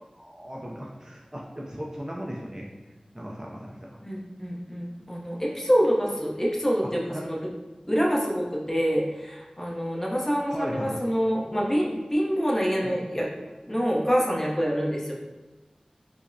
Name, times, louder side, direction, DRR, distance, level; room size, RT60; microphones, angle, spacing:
voice 1, 0.1-2.7 3.1-4.0 7.1-7.2 10.5-11.0 12.8-12.9, equal, 25° right, -3 dB, 0.4 m, -37 dB
voice 2, 4.0-7.5 7.9-13.3 13.6-15.1, equal, 15° left, -3 dB, 0.7 m, -26 dB
4.9 x 2.0 x 2.6 m, 1.1 s
wide cardioid pair, 60°, 2 cm